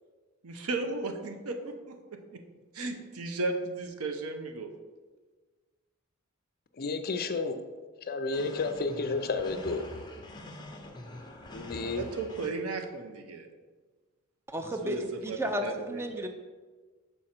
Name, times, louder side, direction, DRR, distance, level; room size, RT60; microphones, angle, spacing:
voice 1, 0.4-2.4 2.7-4.7 11.8-13.5 14.8-16.0, right 3 dB, 90° right, 5 dB, 0.7 m, -35 dB
voice 2, 6.8-7.5 8.0-9.8 11.5-12.0, left 3 dB, 45° left, 9 dB, 0.5 m, -31 dB
sound 1, 8.3-12.5, left 1 dB, 20° left, 0.7 m, -45 dB
voice 3, 14.5-16.3, right 1 dB, 10° right, 5 dB, 0.5 m, -33 dB
6.3 x 4.7 x 4.3 m, 1.4 s
head